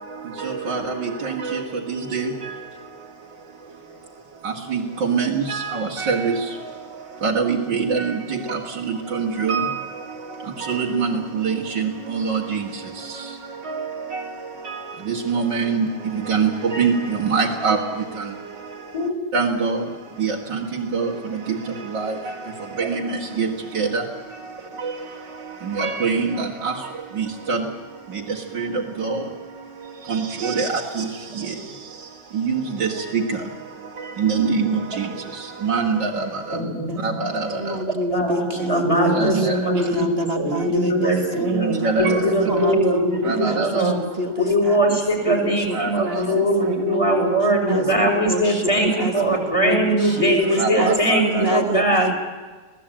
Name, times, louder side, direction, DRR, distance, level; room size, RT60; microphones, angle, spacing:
voice 1, 0.4-2.5 4.4-6.4 7.2-9.8 10.6-12.7 13.7-14.2 14.6-14.8 15.1-15.9 16.1-17.8 19.3-19.8 20.2-21.6 21.9-22.1 22.8-23.5 23.7-24.0 24.8-24.9 25.7-26.7 27.2-27.6 28.5-29.2 30.1-31.1 31.4-31.5 32.3-33.2 34.2-35.1 35.6-36.3 37.0-37.6 39.1-39.5 41.5-42.3 43.2-43.8 45.7-45.9 46.3-46.4 50.6-51.6, right 5 dB, 90° right, -3 dB, 2.8 m, -24 dB
voice 2, 18.9-19.2 22.8-22.9 36.5-37.2 38.1-44.0 44.4-52.1, right 1 dB, 15° left, 3 dB, 6.2 m, -21 dB
voice 3, 37.6-41.6 42.5-43.6 43.9-45.0 45.3-47.3 47.7-52.2, right 1 dB, 35° right, 6 dB, 1.7 m, -27 dB
26.5 x 18.0 x 8.9 m, 1.4 s
omnidirectional pair, 1.9 m